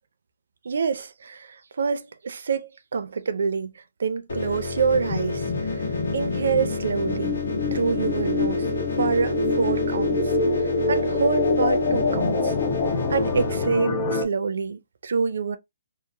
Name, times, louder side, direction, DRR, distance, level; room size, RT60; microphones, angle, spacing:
voice 1, 0.6-3.7 4.0-5.8 6.1-7.4 7.7-8.7 9.0-10.3 10.9-12.5 13.1-15.6, right 5 dB, 70° right, 0.4 m, -26 dB
sound 1, 4.3-13.7, left 3 dB, 90° left, 1.3 m, -30 dB
sound 2, 4.9-14.3, left 3 dB, 30° left, 0.5 m, -26 dB
2.8 x 2.0 x 2.5 m
hypercardioid pair, 165°, 0 cm